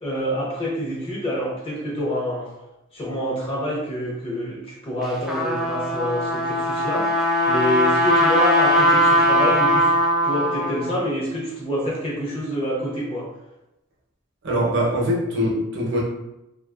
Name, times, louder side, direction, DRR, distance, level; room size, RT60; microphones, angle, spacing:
voice 1, 0.0-2.5 2.9-7.1 7.5-9.9 10.2-13.3, equal, 25° left, -5 dB, 0.6 m, -26 dB
Trumpet, 5.0-11.0, equal, ahead, 0.3 m, -20 dB
voice 2, 14.4-16.0, equal, 60° right, -3 dB, 0.7 m, -22 dB
2.5 x 2.3 x 2.3 m, 0.91 s
head